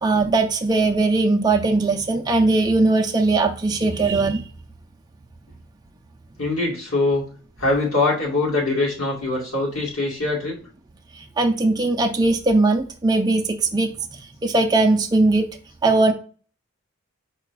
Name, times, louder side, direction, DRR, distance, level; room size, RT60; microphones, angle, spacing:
voice 1, 0.0-4.4 11.4-13.9 14.4-15.5 15.8-16.1, right 2 dB, 20° right, 3 dB, 0.4 m, -19 dB
voice 2, 6.4-7.3 7.6-10.5, left 2 dB, 85° left, -3 dB, 2.2 m, -22 dB
4.8 x 2.2 x 4.6 m, 0.39 s
head